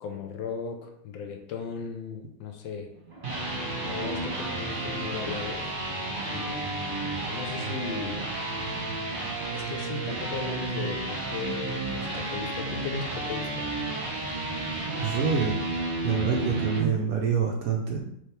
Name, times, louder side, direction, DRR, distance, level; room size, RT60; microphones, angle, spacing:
voice 1, 0.0-2.9 3.8-5.7 6.3-8.3 9.5-13.7, left 5 dB, 75° left, 4 dB, 1.3 m, -37 dB
sound 1, 3.0-16.9, right 2 dB, 35° right, 1.0 m, -32 dB
voice 2, 15.0-15.6 16.0-18.0, right 6 dB, 70° right, 0 dB, 0.8 m, -26 dB
5.1 x 3.2 x 3.3 m, 0.75 s
omnidirectional pair, 2.2 m